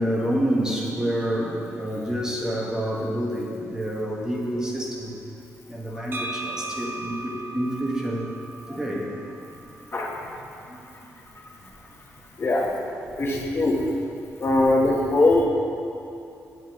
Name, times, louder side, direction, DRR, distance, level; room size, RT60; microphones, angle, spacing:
voice 1, 0.0-5.1 5.7-8.3 8.7-9.1 10.7-10.8 13.0-13.4, equal, 10° right, -3 dB, 1.2 m, -28 dB
sound 1, 6.1-9.9, right 2 dB, 35° right, 0.6 m, -37 dB
voice 2, 9.9-10.4 12.4-12.7 13.2-13.8 14.4-15.4, left 2 dB, 40° left, -2 dB, 1.1 m, -21 dB
8.0 x 7.1 x 2.9 m, 2.8 s
cardioid pair, 85°, 6 cm